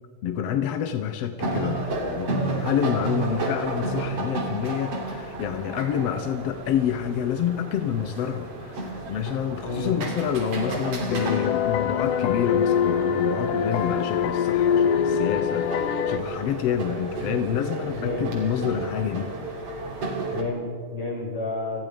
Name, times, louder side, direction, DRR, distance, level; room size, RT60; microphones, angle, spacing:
voice 1, 0.2-19.3, left 9 dB, 65° left, 8 dB, 1.7 m, -28 dB
sound 1, 1.4-20.4, right 3 dB, 45° right, 4.0 m, -32 dB
voice 2, 9.6-9.9 10.7-10.8 17.9-18.4 20.3-21.8, left 3 dB, 40° left, -1 dB, 7.4 m, -30 dB
sound 2, 11.1-16.2, left 8 dB, 80° left, 2.6 m, -23 dB
28.5 x 21.0 x 5.3 m, 2.2 s
omnidirectional pair, 3.8 m